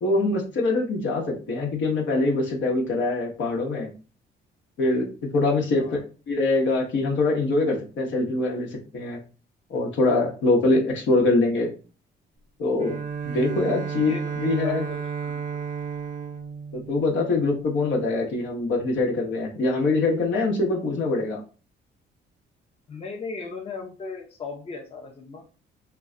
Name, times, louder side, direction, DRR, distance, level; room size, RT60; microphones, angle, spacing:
voice 1, 0.0-3.9 4.8-5.1 5.3-5.8 6.3-9.2 9.7-11.7 12.6-14.9 16.7-21.4, left 2 dB, 70° left, 0 dB, 0.9 m, -24 dB
voice 2, 5.7-6.0 14.0-14.3 14.6-15.6 22.9-25.5, left 4 dB, 30° left, 1 dB, 0.6 m, -37 dB
Bowed string instrument, 12.8-17.9, right 6 dB, 40° right, 0.5 m, -33 dB
2.2 x 2.2 x 3.6 m, 0.35 s
cardioid pair, 90°, 20 cm